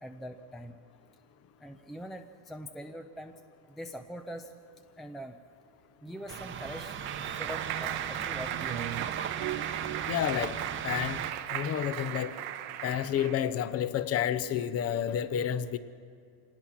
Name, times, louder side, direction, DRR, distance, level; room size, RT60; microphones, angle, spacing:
voice 1, 0.0-0.8 1.6-3.3 3.7-4.5 5.0-5.4 6.0-7.0 7.3-8.9, equal, ahead, 0.5 m, -43 dB
Clapping, 6.2-13.5, right 12 dB, 55° right, 1.1 m, -37 dB
sound 1, 6.3-11.3, right 7 dB, 25° right, 1.0 m, -38 dB
voice 2, 10.1-10.6 10.8-11.2 11.5-12.3 12.8-15.8, left 10 dB, 35° left, 0.8 m, -30 dB
25.5 x 19.5 x 6.0 m
supercardioid pair, 135°, 45 cm